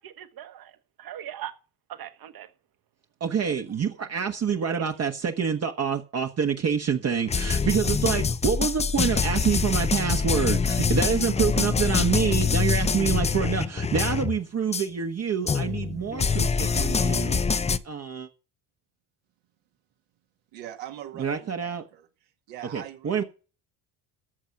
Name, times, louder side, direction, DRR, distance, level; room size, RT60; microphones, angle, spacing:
voice 1, 0.0-1.5 1.9-2.5 4.7-4.8, right 11 dB, 50° right, 1.6 m, -40 dB
voice 2, 3.2-17.4 17.7-18.3 21.2-21.8 22.7-23.2, right 7 dB, 35° right, 1.2 m, -27 dB
sound 1, 7.3-14.4 14.7-14.9 15.5-17.8, left 5 dB, 15° left, 0.5 m, -25 dB
voice 3, 20.5-22.1 22.5-23.2, right 11 dB, 70° right, 2.2 m, -42 dB
14.0 x 6.2 x 5.9 m
supercardioid pair, 90°, 44 cm